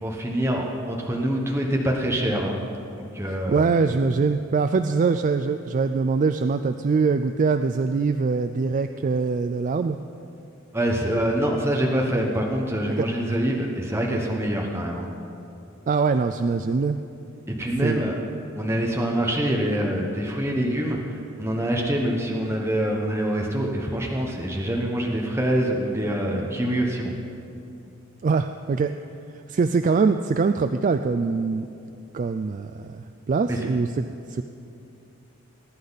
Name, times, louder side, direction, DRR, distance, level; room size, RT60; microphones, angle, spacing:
voice 1, 0.0-2.6 3.0-3.6 10.7-15.1 17.6-18.1 18.5-21.0 21.4-27.1 33.5-33.7, right 1 dB, 10° right, -1 dB, 1.0 m, -25 dB
voice 2, 3.3-10.0 13.0-13.4 15.9-17.0 17.8-18.0 28.2-28.9 29.5-31.7 32.1-34.0 34.3-34.4, right 4 dB, 40° right, 9 dB, 0.3 m, -23 dB
20.0 x 10.0 x 4.0 m, 2.6 s
head